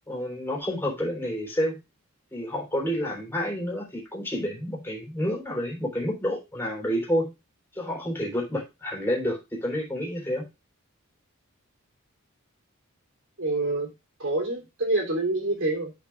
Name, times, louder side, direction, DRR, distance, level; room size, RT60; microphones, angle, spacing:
voice 1, 0.1-1.8 2.3-7.3 7.7-10.5, equal, 10° left, -2 dB, 3.8 m, -29 dB
voice 2, 13.4-13.9 14.2-15.9, right 2 dB, 60° right, 0 dB, 3.2 m, -26 dB
13.5 x 5.4 x 2.5 m, 0.26 s
head